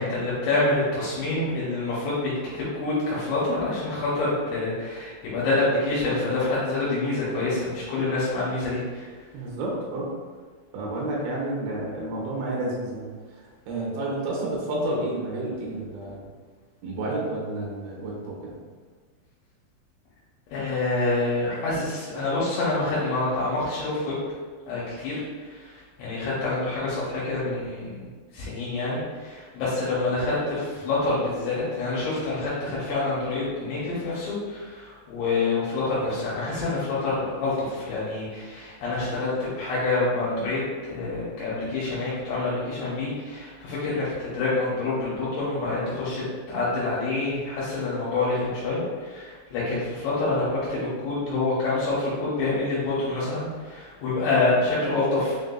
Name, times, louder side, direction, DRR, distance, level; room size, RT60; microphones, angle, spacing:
voice 1, 0.0-9.3 20.5-24.2 24.6-55.4, left 2 dB, 80° left, -9 dB, 3.1 m, -27 dB
voice 2, 9.3-10.1 10.7-16.3 16.8-18.6 21.7-21.8, right 1 dB, 75° right, -4 dB, 3.1 m, -30 dB
7.0 x 2.6 x 2.2 m, 1.5 s
omnidirectional pair, 5.3 m